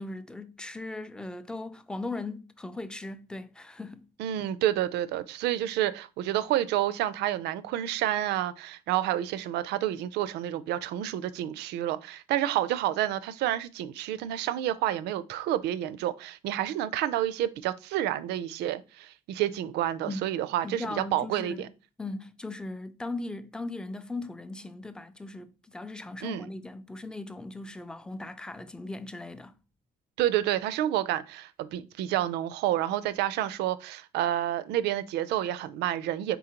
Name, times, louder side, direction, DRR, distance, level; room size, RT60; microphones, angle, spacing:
voice 1, 0.0-4.1 20.0-20.2 20.6-21.7 22.0-29.6, left 2 dB, 5° left, 0.3 m, -38 dB
voice 2, 4.2-21.7 26.2-26.5 30.2-36.4, right 12 dB, 80° right, 0.4 m, -29 dB
3.8 x 3.8 x 2.9 m
cardioid pair, 110°, 17 cm